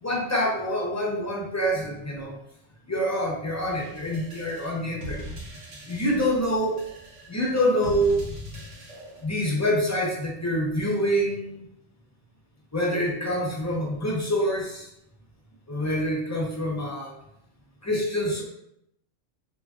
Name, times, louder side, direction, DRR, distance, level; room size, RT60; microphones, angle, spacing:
voice 1, 0.0-2.3 2.9-5.2 5.9-6.8 7.3-8.2 9.2-11.6 12.7-14.9 15.7-17.1 17.8-18.4, equal, 30° left, -3 dB, 0.3 m, -26 dB
sound 1, 3.6-9.2, equal, 85° right, 1.1 m, -41 dB
3.9 x 2.9 x 2.3 m, 0.77 s
omnidirectional pair, 1.2 m